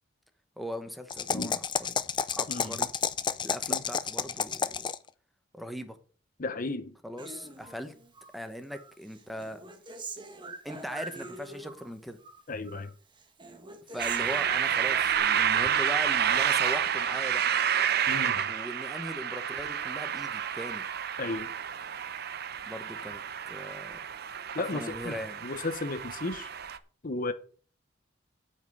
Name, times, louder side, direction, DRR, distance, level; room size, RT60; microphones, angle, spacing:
voice 1, 0.6-2.0 2.3-2.9 3.4-4.9 5.5-6.0 7.0-7.9 8.3-9.6 10.6-12.2 13.9-17.4 18.5-20.8 22.7-23.2 23.5-24.0 24.7-25.4, equal, ahead, 1.1 m, -39 dB
sound 1, 1.1-5.1, left 6 dB, 25° left, 0.5 m, -31 dB
voice 2, 2.5-2.8 3.7-3.8 6.4-6.9 12.5-12.9 18.1-18.4 21.2-21.5 24.5-25.2 25.4-26.5 27.0-27.3, left 2 dB, 45° left, 0.8 m, -34 dB
Human voice, 7.2-8.4 8.7-11.9 12.2-12.9 13.2-15.2, right 2 dB, 25° right, 1.5 m, -44 dB
sound 2, 14.0-26.8, right 8 dB, 55° right, 0.7 m, -29 dB
8.9 x 5.4 x 8.0 m
head